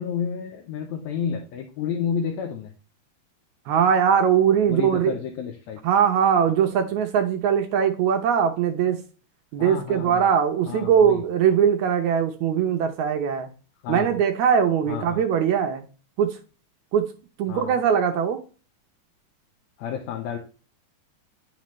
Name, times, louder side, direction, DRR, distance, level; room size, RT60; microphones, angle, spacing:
voice 1, 0.0-2.7 4.7-5.8 9.6-10.3 10.7-11.2 13.8-14.1 14.9-15.2 17.5-17.8 19.8-20.4, left 7 dB, 70° left, 3 dB, 2.1 m, -30 dB
voice 2, 3.7-5.1 5.8-9.0 9.5-13.5 13.9-15.8 16.2-16.4 16.9-17.1 17.4-18.4, right 8 dB, 75° right, 5 dB, 2.0 m, -21 dB
10.0 x 6.0 x 3.1 m, 0.36 s
omnidirectional pair, 3.6 m